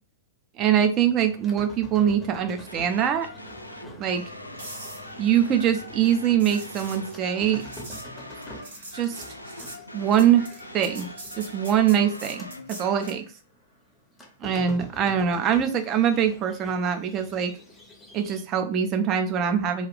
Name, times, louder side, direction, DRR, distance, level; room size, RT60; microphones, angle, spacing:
voice 1, 0.6-3.3 4.0-4.2 5.2-7.6 8.9-9.2 9.9-10.5 10.7-11.1 11.4-13.2 14.4-17.5 18.1-19.9, right 9 dB, 30° right, 7 dB, 0.5 m, -23 dB
sound 1, 0.9-12.8 13.2-18.4, equal, 10° left, 0.7 m, -46 dB
sound 2, 2.7-13.2, left 1 dB, 85° left, 0.3 m, -42 dB
sound 3, 4.6-13.2 17.4-17.7, right 2 dB, 70° right, 0.9 m, -44 dB
2.4 x 2.3 x 3.4 m, 0.39 s
figure-of-eight pair, 100°, 0 cm